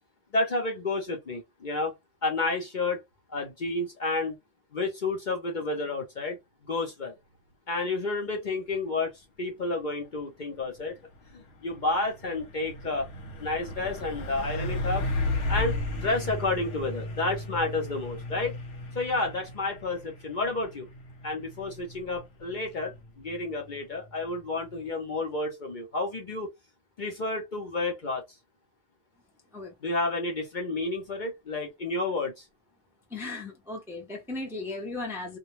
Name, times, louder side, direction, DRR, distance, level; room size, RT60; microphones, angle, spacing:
voice 1, 0.3-1.9 2.2-3.0 3.3-4.4 4.7-6.4 6.6-7.1 7.7-10.9 11.3-13.1 13.4-15.1 15.5-18.5 18.9-20.9 21.2-26.5 27.0-28.2 29.8-32.4, left 2 dB, 50° left, 0.7 m, -30 dB
Truck, 10.6-24.9, left 2 dB, 75° left, 1.1 m, -35 dB
voice 2, 33.1-35.4, left 2 dB, 5° right, 0.5 m, -36 dB
2.2 x 2.2 x 2.9 m
omnidirectional pair, 1.2 m